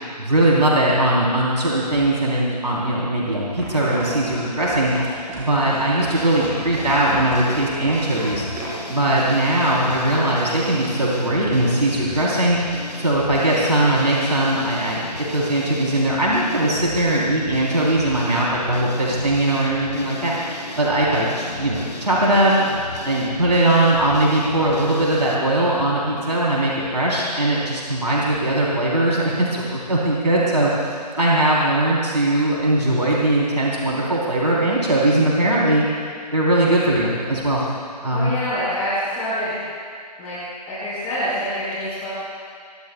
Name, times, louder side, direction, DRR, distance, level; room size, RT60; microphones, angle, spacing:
voice 1, 0.2-12.6 13.0-15.0 15.3-35.8 36.3-37.6 38.0-38.3, right 1 dB, 80° right, -5 dB, 3.7 m, -20 dB
sound 1, 3.6-8.8, right 2 dB, 15° right, 4.6 m, -33 dB
sound 2, 6.2-25.4, left 2 dB, 80° left, 3.5 m, -35 dB
voice 2, 38.1-39.6 40.2-40.3 40.7-42.1, equal, 15° left, -11 dB, 5.2 m, -26 dB
23.5 x 23.5 x 2.3 m, 2.2 s
figure-of-eight pair, 145°, 21 cm